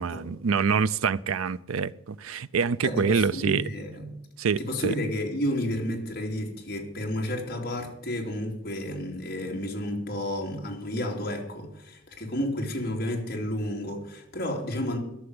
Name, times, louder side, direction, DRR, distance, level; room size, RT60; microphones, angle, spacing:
voice 1, 0.0-3.6 4.4-4.9, right 6 dB, 90° right, 0.5 m, -26 dB
voice 2, 2.8-4.1 4.6-15.0, left 1 dB, 45° left, 2.9 m, -31 dB
13.0 x 6.9 x 9.6 m
head